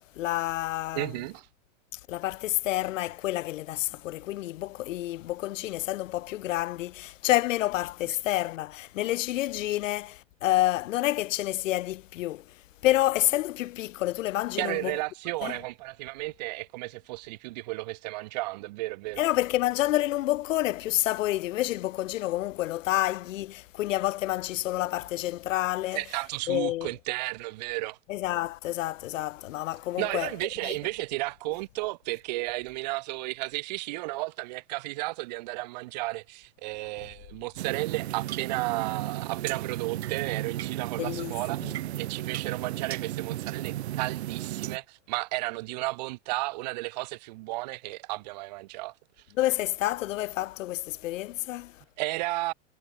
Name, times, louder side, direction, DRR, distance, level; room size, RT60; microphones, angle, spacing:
voice 1, 0.2-1.1 1.9-12.4 12.8-15.0 15.4-15.6 19.2-26.0 26.5-26.9 28.1-30.3 30.6-30.7 41.0-41.3 41.6-41.7 49.4-51.8, left 15 dB, 85° left, 0.6 m, -29 dB
voice 2, 0.9-1.5 14.6-19.2 25.9-28.0 30.0-48.9 52.0-52.5, right 22 dB, 35° right, 1.2 m, -33 dB
sound 1, 37.6-44.8, right 14 dB, 55° right, 1.2 m, -34 dB
supercardioid pair, 170°, 38 cm